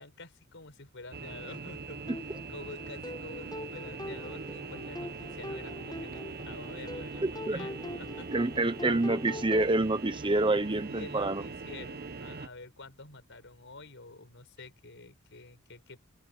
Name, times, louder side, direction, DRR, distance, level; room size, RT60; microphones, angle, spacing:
voice 1, 0.0-9.2 10.9-16.0, left 3 dB, 60° left, 5.5 m, -49 dB
sound 1, 1.1-12.5, right 3 dB, 45° right, 1.1 m, -41 dB
sound 2, 2.1-9.8, left 1 dB, 20° left, 6.8 m, -43 dB
voice 2, 7.2-7.7 8.3-11.4, right 2 dB, 25° right, 1.0 m, -27 dB
open air
head